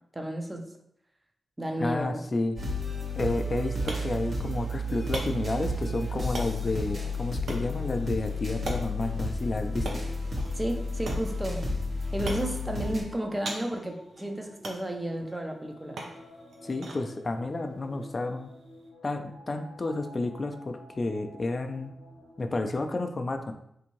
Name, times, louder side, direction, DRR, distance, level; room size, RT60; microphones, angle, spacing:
voice 1, 0.1-0.7 1.6-2.2 10.6-11.7 12.1-16.0, right 1 dB, 20° right, 3 dB, 0.5 m, -32 dB
voice 2, 1.8-2.6 3.2-10.0 16.6-18.5 19.0-21.9 22.4-23.5, left 2 dB, 35° left, 6 dB, 0.3 m, -31 dB
sound 1, 2.6-13.0, left 1 dB, 40° right, 1.0 m, -32 dB
sound 2, 3.3-18.9, right 2 dB, 75° right, 0.6 m, -43 dB
sound 3, 4.3-22.6, left 1 dB, 65° left, 0.7 m, -52 dB
3.5 x 2.6 x 3.0 m, 0.74 s
cardioid pair, 75°, 0 cm